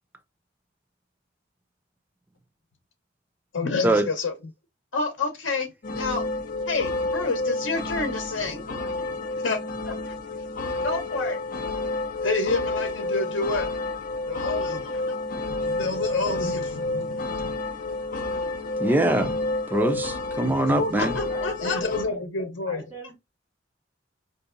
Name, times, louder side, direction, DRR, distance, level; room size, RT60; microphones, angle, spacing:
voice 1, 3.5-4.3 4.9-6.3 6.7-8.6 9.4-9.6 9.9-10.1 10.8-11.4 12.2-13.7 14.2-15.2 15.5-17.6 19.2-19.3 20.5-22.8, left 3 dB, 80° left, 0.8 m, -29 dB
sound 1, 5.8-22.0, left 2 dB, 45° left, 0.5 m, -30 dB
voice 2, 18.8-19.4 19.7-21.2, right 1 dB, 10° right, 0.3 m, -23 dB
voice 3, 21.3-22.2 22.7-23.1, equal, 25° right, 1.4 m, -41 dB
4.6 x 2.6 x 2.5 m
head